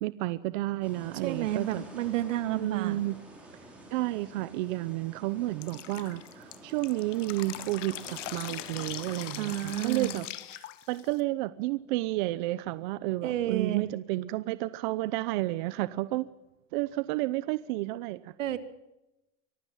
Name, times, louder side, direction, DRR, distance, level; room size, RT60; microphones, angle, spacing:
voice 1, 0.0-1.8 2.5-3.2 3.9-10.3 10.9-16.3 16.7-18.3, right 18 dB, 40° right, 16 dB, 0.8 m, -31 dB
sound 1, 0.8-10.0, right 1 dB, 5° right, 5.3 m, -49 dB
voice 2, 1.2-3.0 9.4-10.2 13.2-13.9 18.4-18.6, right 12 dB, 85° right, 11 dB, 2.4 m, -30 dB
Drip, 5.6-11.2, left 14 dB, 80° left, 1.7 m, -41 dB
24.5 x 15.5 x 7.3 m, 0.93 s
supercardioid pair, 170°, 37 cm